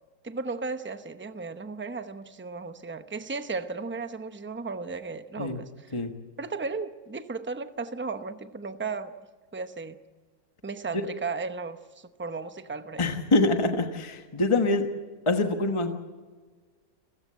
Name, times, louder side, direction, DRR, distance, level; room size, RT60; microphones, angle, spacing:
voice 1, 0.2-5.9 6.4-9.1 9.5-10.0 10.6-13.1, right 4 dB, 10° right, 9 dB, 0.7 m, -35 dB
voice 2, 13.0-14.9 15.3-15.9, left 2 dB, 20° left, 5 dB, 1.3 m, -25 dB
29.5 x 15.5 x 7.5 m, 1.4 s
omnidirectional pair, 1.6 m